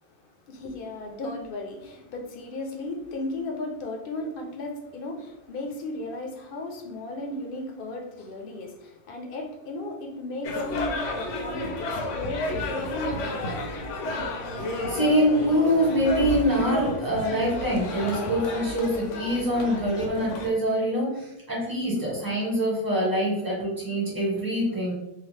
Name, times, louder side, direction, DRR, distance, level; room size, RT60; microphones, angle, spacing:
voice 1, 0.0-13.8, left 2 dB, 60° left, 0.7 m, -35 dB
sound 1, 10.4-20.5, left 2 dB, 80° left, 1.0 m, -32 dB
voice 2, 14.9-24.9, equal, 20° right, 1.1 m, -24 dB
2.8 x 2.3 x 3.2 m
omnidirectional pair, 1.2 m